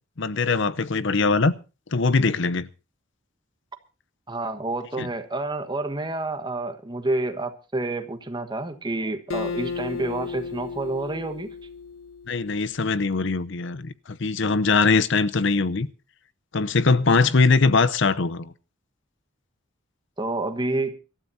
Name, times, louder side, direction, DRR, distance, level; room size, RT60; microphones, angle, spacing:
voice 1, 0.2-1.5 1.9-2.7 5.0-5.1 12.3-15.9 16.5-18.5, left 4 dB, 65° left, 0.7 m, -21 dB
voice 2, 4.3-11.5 20.2-20.9, right 2 dB, 20° right, 1.4 m, -29 dB
Acoustic guitar, 9.3-12.7, left 5 dB, 85° left, 1.1 m, -34 dB
25.5 x 13.0 x 2.7 m
head